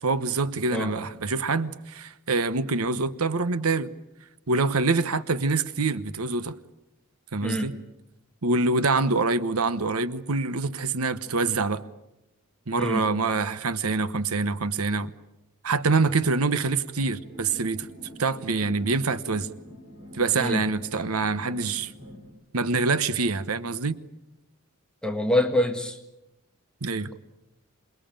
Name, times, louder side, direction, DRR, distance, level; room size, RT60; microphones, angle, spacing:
voice 1, 0.0-3.9 4.5-6.6 7.3-7.7 8.4-11.8 12.7-15.1 15.6-17.9 18.2-19.5 20.1-21.9 22.5-24.0 26.8-27.1, right 3 dB, 90° right, 1.1 m, -25 dB
voice 2, 7.4-7.7 12.8-13.0 20.4-20.6 25.0-26.0, left 1 dB, 5° left, 1.8 m, -25 dB
sound 1, 17.0-22.3, equal, 25° right, 7.6 m, -45 dB
27.5 x 21.0 x 8.9 m
head